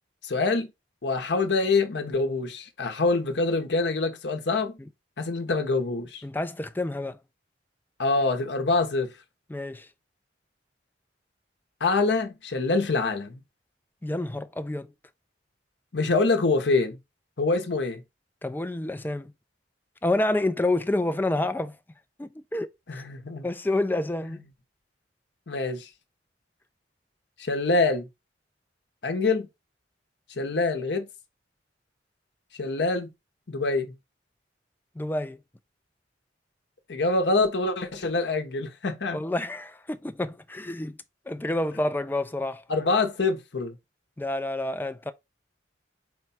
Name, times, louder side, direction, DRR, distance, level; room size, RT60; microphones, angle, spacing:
voice 1, 0.2-0.7 1.0-4.8 5.2-6.2 8.0-9.1 11.8-13.4 15.9-17.0 17.4-18.0 22.9-23.4 25.5-25.9 27.4-28.1 29.0-29.5 30.4-31.1 32.6-33.1 33.5-33.9 36.9-39.2 42.7-43.7, left 3 dB, 65° left, 0.8 m, -25 dB
voice 2, 6.2-7.2 9.5-9.9 14.0-14.9 18.4-19.3 20.0-21.8 22.2-22.7 23.4-24.4 35.0-35.4 39.1-41.0 41.3-42.6 44.2-45.1, left 2 dB, 10° left, 0.3 m, -28 dB
4.6 x 2.3 x 4.1 m
head